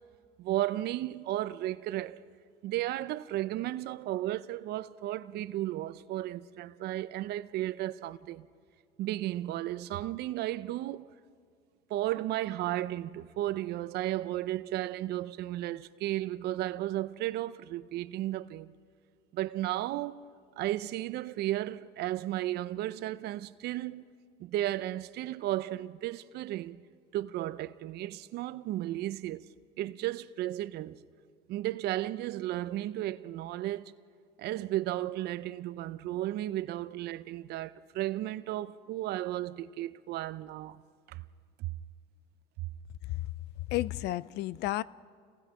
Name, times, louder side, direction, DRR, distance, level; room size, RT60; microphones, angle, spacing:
voice 1, 0.4-2.2 2.6-8.5 9.0-11.1 11.9-18.7 19.3-20.2 20.6-24.0 24.4-26.8 27.1-29.5 29.8-31.0 31.5-33.9 34.4-40.8 41.1-41.2 41.6-41.7, right 14 dB, 60° right, 0.7 m, -34 dB
voice 2, 43.7-44.8, left 16 dB, 65° left, 0.5 m, -32 dB
29.5 x 19.0 x 5.0 m
cardioid pair, 115°, 19 cm